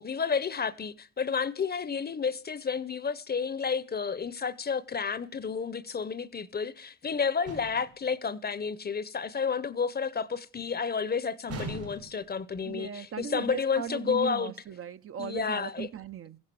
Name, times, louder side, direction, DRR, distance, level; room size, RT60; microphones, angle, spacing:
voice 1, 0.0-14.5 15.2-15.9, left 6 dB, 30° left, 0.9 m, -31 dB
sound 1, 7.5-8.0 11.5-12.3, right 3 dB, 75° right, 4.9 m, -40 dB
voice 2, 12.6-16.4, right 9 dB, 45° right, 0.8 m, -38 dB
15.0 x 9.7 x 6.9 m
cardioid pair, 90°, 30 cm